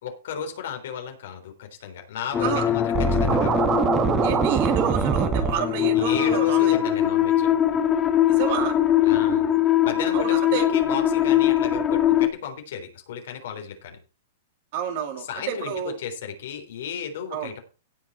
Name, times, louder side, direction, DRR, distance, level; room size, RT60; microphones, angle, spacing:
voice 1, 0.0-3.7 5.9-7.5 9.0-9.5 9.8-14.0 15.3-17.6, left 7 dB, 70° left, 5 dB, 3.9 m, -34 dB
sound 1, 2.3-12.3, left 11 dB, 25° left, 1.8 m, -22 dB
Scratching (performance technique), 2.9-5.5, right 6 dB, 25° right, 1.8 m, -22 dB
voice 2, 4.2-6.7 8.3-8.8 10.1-10.7 14.7-16.0 17.3-17.6, right 8 dB, 55° right, 6 dB, 2.7 m, -29 dB
17.0 x 5.9 x 4.4 m, 0.33 s
hypercardioid pair, 120°, 0 cm